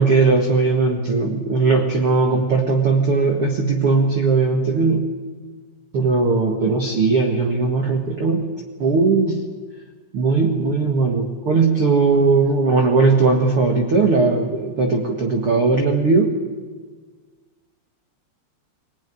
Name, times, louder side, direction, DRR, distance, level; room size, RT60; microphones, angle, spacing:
voice 1, 0.0-5.1 5.9-8.5 8.8-9.5 10.1-16.4, right 4 dB, 50° right, 3 dB, 1.9 m, -18 dB
21.5 x 21.0 x 10.0 m, 1.5 s
omnidirectional pair, 4.8 m